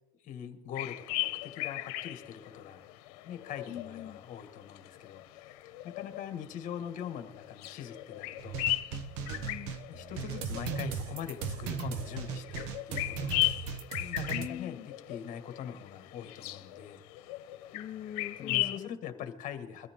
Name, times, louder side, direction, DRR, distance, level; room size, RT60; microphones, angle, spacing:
voice 1, 0.2-2.8 3.2-8.7 9.9-13.7 14.0-17.0 18.4-19.9, left 9 dB, 40° left, 7 dB, 1.9 m, -43 dB
sound 1, 0.7-18.8, left 17 dB, 75° left, 1.1 m, -38 dB
voice 2, 3.7-4.2 9.4-9.7 14.3-14.9 17.7-19.3, left 10 dB, 20° left, 7 dB, 1.0 m, -42 dB
sound 2, 8.4-14.5, right 6 dB, 60° right, 1.1 m, -37 dB
22.0 x 13.5 x 3.8 m, 0.94 s
supercardioid pair, 140°, 20 cm